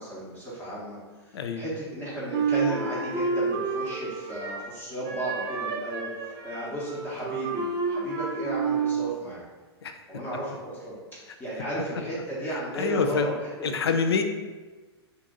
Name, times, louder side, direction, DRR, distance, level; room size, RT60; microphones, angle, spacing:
voice 1, 0.0-9.4 10.1-13.7, right 1 dB, 15° left, -7 dB, 0.9 m, -34 dB
Wind instrument woodwind instrument, 2.3-4.7 5.0-9.1, right 5 dB, 25° right, 0.4 m, -29 dB
voice 2, 12.5-13.3 13.6-14.2, left 5 dB, 65° left, 6 dB, 0.4 m, -26 dB
2.7 x 2.6 x 3.6 m, 1.3 s
figure-of-eight pair, 105°, 14 cm